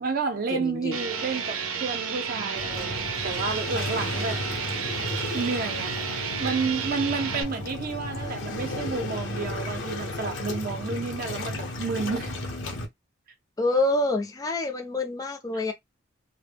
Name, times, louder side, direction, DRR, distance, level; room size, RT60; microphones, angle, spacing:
voice 1, 0.0-4.4 5.3-5.9 6.4-12.3 15.5-15.6, right 4 dB, 45° right, 0.6 m, -30 dB
voice 2, 0.5-1.0 13.6-15.7, left 2 dB, 20° left, 0.5 m, -27 dB
sound 1, 0.9-7.4, right 6 dB, 90° right, 0.6 m, -32 dB
Waves surf, 2.6-12.8, left 2 dB, 65° left, 0.8 m, -34 dB
2.1 x 2.1 x 3.2 m
head